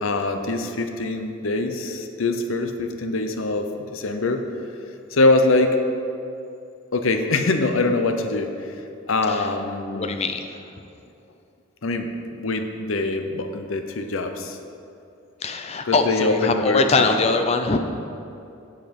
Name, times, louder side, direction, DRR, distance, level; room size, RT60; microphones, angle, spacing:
voice 1, 0.0-4.4 5.1-5.8 6.9-8.7 9.1-10.2 11.8-12.1 12.4-14.6 15.9-17.1, left 2 dB, 70° left, 6 dB, 0.7 m, -23 dB
voice 2, 9.9-10.4 15.4-17.8, left 3 dB, 30° left, 6 dB, 0.5 m, -22 dB
8.2 x 7.6 x 5.2 m, 2.7 s
head